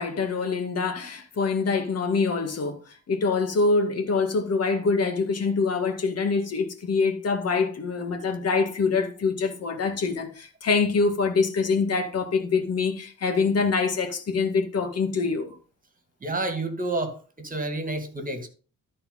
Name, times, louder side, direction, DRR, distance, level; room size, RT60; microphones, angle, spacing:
voice 1, 0.0-15.5, left 4 dB, 55° left, 1.9 m, -25 dB
voice 2, 16.2-18.5, right 2 dB, 30° right, 2.2 m, -30 dB
13.0 x 4.4 x 5.5 m
cardioid pair, 90°, 30 cm